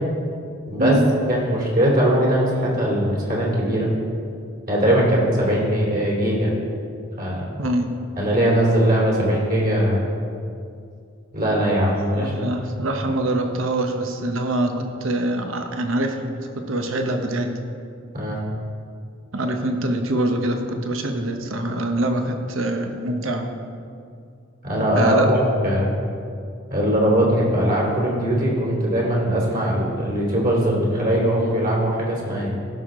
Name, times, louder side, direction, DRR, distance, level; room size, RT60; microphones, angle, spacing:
voice 1, 1.3-3.9 4.7-6.5 7.2-7.5 8.2-10.1 11.3-12.6 18.1-18.4 24.6-25.4 25.6-25.9 26.7-32.5, equal, 50° right, -3 dB, 2.9 m, -20 dB
voice 2, 7.6-7.9 12.1-16.3 16.5-17.5 19.3-23.5 24.9-25.3, right 1 dB, 80° right, 5 dB, 1.0 m, -24 dB
16.0 x 6.5 x 3.8 m, 2.4 s
head